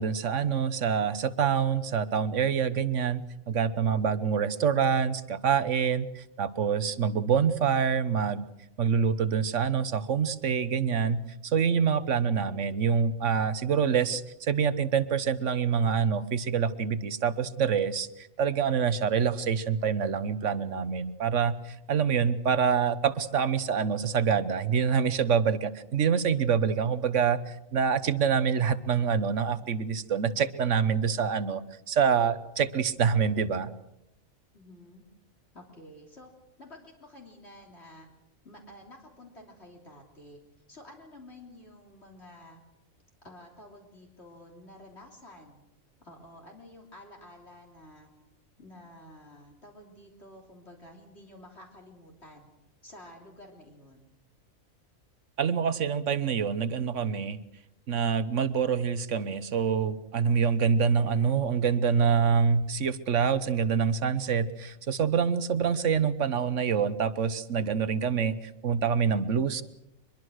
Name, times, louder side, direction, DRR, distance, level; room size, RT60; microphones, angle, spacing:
voice 1, 0.0-3.2 3.5-8.4 8.8-31.6 31.9-33.7 55.4-57.4 57.9-69.6, right 6 dB, 65° right, 14 dB, 1.4 m, -26 dB
voice 2, 34.5-35.0 35.5-36.3 36.6-38.1 38.4-40.4 40.7-42.6 43.2-45.6 46.0-48.1 48.6-52.5 52.8-54.1, left 1 dB, 50° left, 0 dB, 3.7 m, -50 dB
24.0 x 22.5 x 6.4 m, 0.87 s
omnidirectional pair, 1.4 m